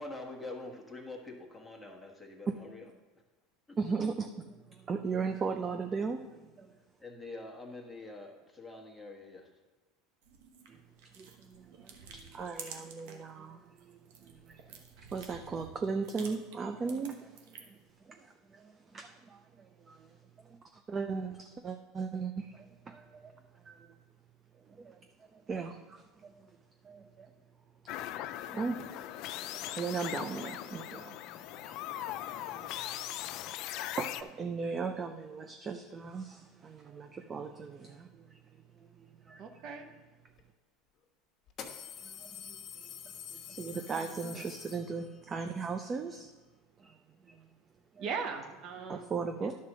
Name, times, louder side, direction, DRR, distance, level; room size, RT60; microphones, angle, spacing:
voice 1, 0.0-2.8 3.7-3.8 7.0-9.5 32.4-32.8, left 2 dB, 5° left, -1 dB, 1.4 m, -45 dB
voice 2, 3.8-6.2 6.6-6.7 11.2-14.8 15.1-17.7 18.0-20.2 20.4-20.6 20.9-23.3 23.6-23.8 24.7-25.0 25.3-26.5 26.8-27.3 28.5-31.7 32.0-32.1 32.4-32.9 34.0-38.4 39.0-39.4 42.0-42.9 43.3-46.3 46.8-47.0 47.3-47.4 47.9-48.1 48.9-49.5, right 5 dB, 30° right, 6 dB, 0.5 m, -38 dB
sound 1, 10.2-13.3 13.7-17.9, right 6 dB, 75° right, 1.2 m, -51 dB
sound 2, 27.9-34.2, left 13 dB, 60° left, 0.4 m, -40 dB
voice 3, 39.4-39.9 43.7-44.4 48.0-49.1 49.4-49.6, right 5 dB, 50° right, 5 dB, 0.9 m, -40 dB
sound 3, 40.4-40.5 41.5-45.3, left 8 dB, 45° left, 1.1 m, -46 dB
11.0 x 4.3 x 6.1 m, 1.2 s
supercardioid pair, 115°, 0 cm